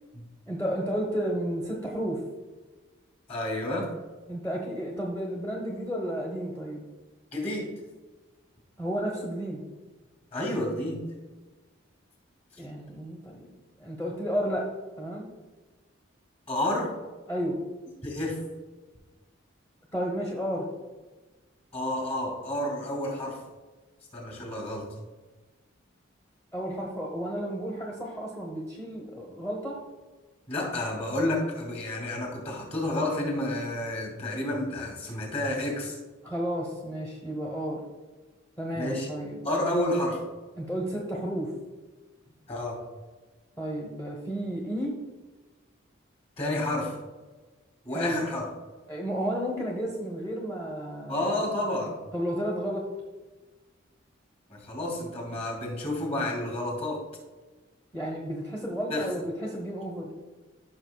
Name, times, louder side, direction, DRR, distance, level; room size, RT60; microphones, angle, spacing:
voice 1, 0.5-2.2 4.3-6.8 8.8-9.7 12.6-13.5 13.8-14.7 15.0-15.3 17.3-17.6 19.9-20.7 26.5-29.8 36.2-37.8 38.6-39.4 40.6-41.5 43.6-45.0 47.9-48.2 48.9-51.2 52.1-52.9 57.9-60.1, equal, 10° left, -2 dB, 1.0 m, -32 dB
voice 2, 3.3-3.9 7.3-7.7 10.3-11.0 16.5-16.9 18.0-18.4 21.7-23.4 24.1-24.9 30.5-36.0 38.7-39.1 39.4-40.2 42.5-42.8 46.4-46.9 47.8-48.4 51.1-51.9 54.5-57.0 58.9-59.1, left 1 dB, 35° left, 0 dB, 2.8 m, -30 dB
14.5 x 6.4 x 2.3 m, 1.3 s
head